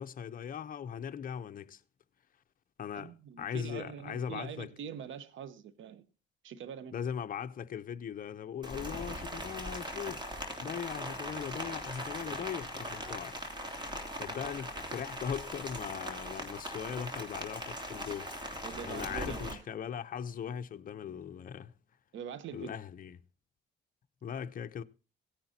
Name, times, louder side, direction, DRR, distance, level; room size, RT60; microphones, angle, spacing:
voice 1, 0.0-1.8 2.8-3.1 3.4-4.7 6.9-10.2 10.6-13.4 14.2-18.3 18.9-21.7 22.5-23.2 24.2-24.8, left 8 dB, 45° left, 0.7 m, -39 dB
voice 2, 2.9-6.1 6.4-7.0 10.7-10.8 18.6-19.6 22.1-22.7, right 8 dB, 75° right, 1.0 m, -44 dB
Rain, 8.6-19.5, equal, 20° right, 3.0 m, -40 dB
17.0 x 10.0 x 2.8 m
cardioid pair, 90°, 20 cm